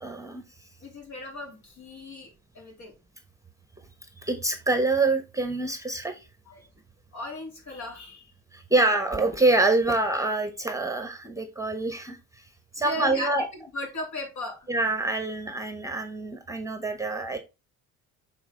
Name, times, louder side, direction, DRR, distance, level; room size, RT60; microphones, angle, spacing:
voice 1, 0.0-0.4 4.2-6.3 8.5-12.5 12.7-13.5 14.7-17.4, right 2 dB, 10° right, 8 dB, 1.0 m, -26 dB
voice 2, 0.8-2.9 6.5-6.7 7.1-8.3 12.8-14.7, left 1 dB, 60° left, 1 dB, 3.2 m, -37 dB
7.1 x 4.0 x 3.7 m, 0.27 s
cardioid pair, 95°, 33 cm